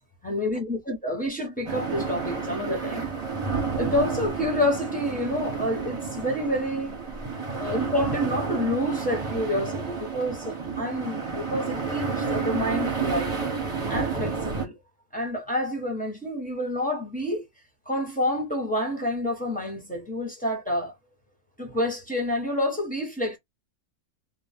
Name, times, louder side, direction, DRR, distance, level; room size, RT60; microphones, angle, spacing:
voice 1, 0.2-3.1 3.8-7.0 7.5-13.4 13.9-14.8 15.1-17.4 17.9-20.9 21.6-23.4, left 1 dB, 10° left, 0.7 m, -28 dB
sound 1, 1.7-14.7, right 5 dB, 25° right, 0.8 m, -30 dB
2.5 x 2.1 x 3.3 m
omnidirectional pair, 1.5 m